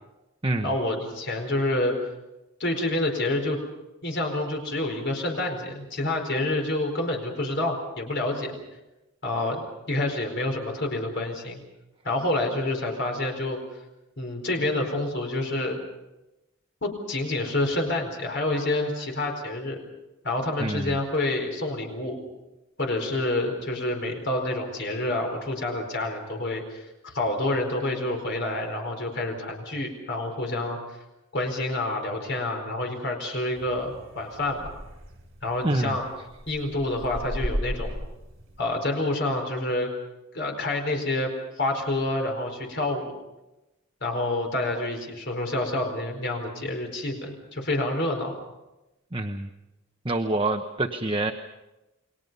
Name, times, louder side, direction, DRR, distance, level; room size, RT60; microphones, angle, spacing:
voice 1, 0.6-2.0 2.6-3.6 4.0-8.5 9.2-11.6 12.0-13.6 14.2-15.8 16.8-19.8 20.2-22.2 22.8-30.8 31.3-34.7 35.4-36.0 36.5-38.0 38.6-39.9 40.3-43.1 44.0-48.3, left 2 dB, 55° left, 3 dB, 4.5 m, -28 dB
voice 2, 20.6-21.0 35.6-36.0 49.1-49.5 50.0-51.3, right 2 dB, 25° right, 4 dB, 1.0 m, -26 dB
sound 1, 33.6-38.6, equal, 65° right, 5.5 m, -36 dB
29.5 x 22.5 x 5.5 m, 0.99 s
head